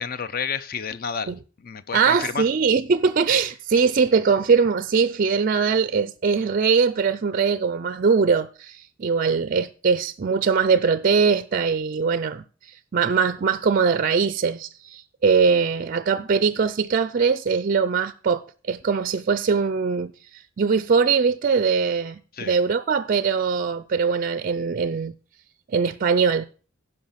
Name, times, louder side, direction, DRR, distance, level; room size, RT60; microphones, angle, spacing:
voice 1, 0.0-2.5 22.3-22.6, left 6 dB, 45° left, 0.6 m, -30 dB
voice 2, 1.9-25.1 25.7-26.5, right 5 dB, 45° right, 0.4 m, -21 dB
10.5 x 5.4 x 5.7 m
head